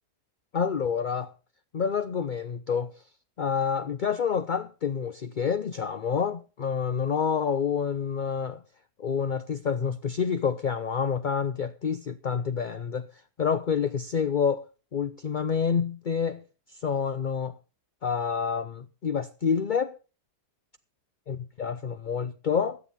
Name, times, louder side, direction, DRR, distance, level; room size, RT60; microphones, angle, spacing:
voice 1, 0.5-1.3 1.7-3.0 3.4-8.6 9.0-14.7 14.9-16.4 16.7-17.5 18.0-20.0 21.3-22.8, left 6 dB, 50° left, 0.6 m, -28 dB
16.5 x 11.0 x 4.2 m
omnidirectional pair, 1.7 m